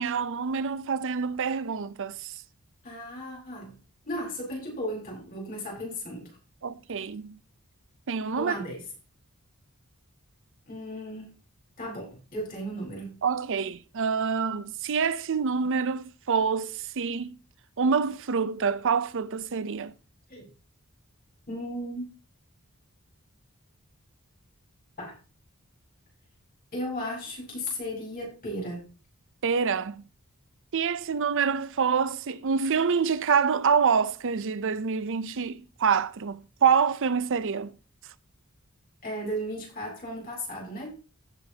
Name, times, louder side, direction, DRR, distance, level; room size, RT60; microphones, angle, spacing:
voice 1, 0.0-2.3 6.6-7.4 8.1-8.6 13.2-17.4 17.8-19.9 29.4-30.0 30.7-37.7, right 6 dB, 60° right, 0.6 m, -26 dB
voice 2, 2.8-3.8 4.0-6.4 8.4-8.8 10.7-11.3 11.8-13.2 20.3-20.5 21.5-22.1 25.0-25.2 26.7-28.9 39.0-40.9, equal, 40° left, 4.5 m, -35 dB
16.0 x 7.3 x 2.8 m
head